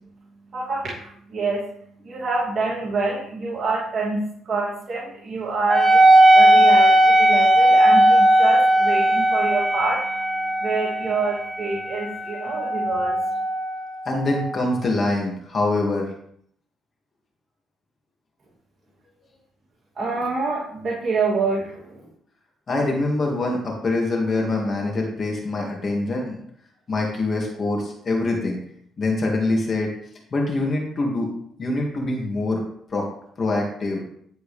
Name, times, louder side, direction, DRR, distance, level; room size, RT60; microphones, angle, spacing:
voice 1, 0.5-1.6 2.0-4.2 4.4-6.0 6.3-10.0 10.6-13.2 20.0-21.9, right 3 dB, 45° right, -6 dB, 2.9 m, -26 dB
Wind instrument woodwind instrument, 5.7-14.6, right 1 dB, 15° right, 1.6 m, -17 dB
voice 2, 14.1-16.1 22.7-26.4 26.9-28.6 29.0-29.9 30.3-31.3 31.6-32.6 32.9-33.1 33.4-34.0, left 2 dB, 35° left, 0 dB, 2.2 m, -24 dB
10.5 x 7.8 x 3.5 m, 0.66 s
cardioid pair, 105°, 0 cm